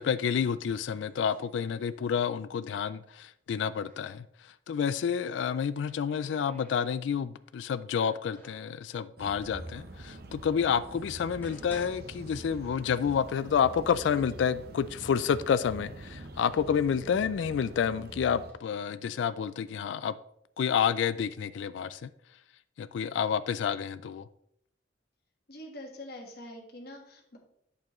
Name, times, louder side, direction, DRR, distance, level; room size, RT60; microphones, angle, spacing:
voice 1, 0.0-4.3 4.7-20.1 20.6-22.1 22.8-24.2, left 7 dB, 85° left, 0.3 m, -29 dB
sound 1, 0.6-2.5 2.7-4.2 5.3-7.3 7.9-8.8 9.6-9.7 10.4-10.5 11.1-13.1 13.4-13.5 14.2-14.3 14.7-15.3 15.9-17.5 18.2-18.5, left 1 dB, 10° left, 1.8 m, -56 dB
sound 2, 9.2-18.5, right 1 dB, 60° right, 0.8 m, -45 dB
voice 2, 25.5-27.4, left 1 dB, 60° left, 1.5 m, -44 dB
8.4 x 6.7 x 3.1 m
head